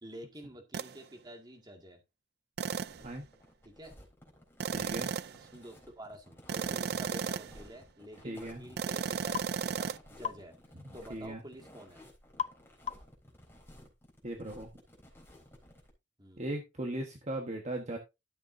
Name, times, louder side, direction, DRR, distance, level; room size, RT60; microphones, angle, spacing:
voice 1, 0.0-2.0 3.6-3.9 5.4-9.4 9.8-10.6 10.9-12.0 16.2-16.4, right 1 dB, 25° right, 3 dB, 2.1 m, -49 dB
sound 1, 0.7-1.0 2.6-3.1 4.6-5.4 6.5-7.6 8.8-10.0, right 6 dB, 60° right, 0.4 m, -34 dB
sound 2, 2.8-15.9, left 1 dB, 15° left, 3.7 m, -56 dB
voice 2, 4.7-5.1 8.2-8.6 11.1-11.4 14.2-14.7 16.4-18.0, right 1 dB, 40° right, 2 dB, 1.4 m, -38 dB
sound 3, 9.3-9.5 10.2-10.5 12.4-12.6 12.9-13.2, left 8 dB, 35° left, 0.4 m, -36 dB
12.5 x 7.0 x 2.7 m, 0.24 s
head